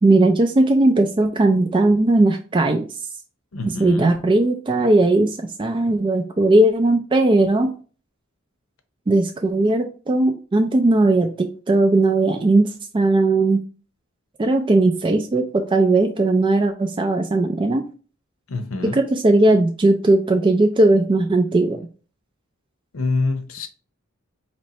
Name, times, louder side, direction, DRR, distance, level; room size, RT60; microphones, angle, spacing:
voice 1, 0.0-2.9 3.8-7.7 9.1-13.6 14.4-17.8 18.9-21.8, right 2 dB, 25° right, 0.3 m, -18 dB
voice 2, 3.5-4.2 18.5-19.0 22.9-23.7, left 3 dB, 85° left, 0.7 m, -26 dB
4.3 x 3.1 x 2.8 m
head